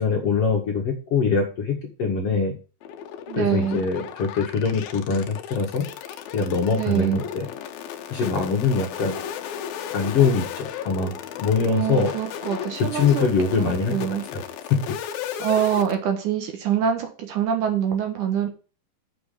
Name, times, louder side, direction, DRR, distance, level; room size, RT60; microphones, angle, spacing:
voice 1, 0.0-2.5 3.3-5.8 6.3-7.5 8.1-9.2 9.9-11.1 11.4-12.1 12.9-14.0 14.3-14.4, left 5 dB, 55° left, 1 dB, 1.9 m, -23 dB
sound 1, 2.8-16.0, left 9 dB, 85° left, 2.7 m, -35 dB
voice 2, 3.3-3.8 6.7-7.2 11.7-13.3 13.6-14.2 15.4-18.5, right 9 dB, 65° right, 4 dB, 2.5 m, -25 dB
7.0 x 6.5 x 6.7 m, 0.35 s
omnidirectional pair, 4.3 m